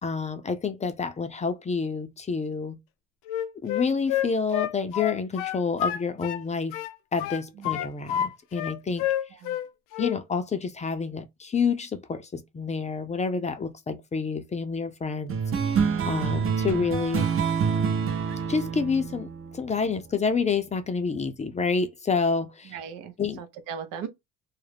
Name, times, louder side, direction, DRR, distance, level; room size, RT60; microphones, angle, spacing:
voice 1, 0.0-2.8 3.6-6.8 7.1-9.1 10.0-17.3 18.5-22.7 23.2-23.4, left 5 dB, 20° left, 0.4 m, -28 dB
Wind instrument woodwind instrument, 3.3-6.4 6.7-8.3 8.5-9.7 9.9-10.2, left 11 dB, 85° left, 0.5 m, -29 dB
sound 1, 15.3-20.2, right 6 dB, 40° right, 0.7 m, -27 dB
voice 2, 22.6-24.1, right 7 dB, 80° right, 0.7 m, -38 dB
2.3 x 2.0 x 3.2 m
supercardioid pair, 85°, 32 cm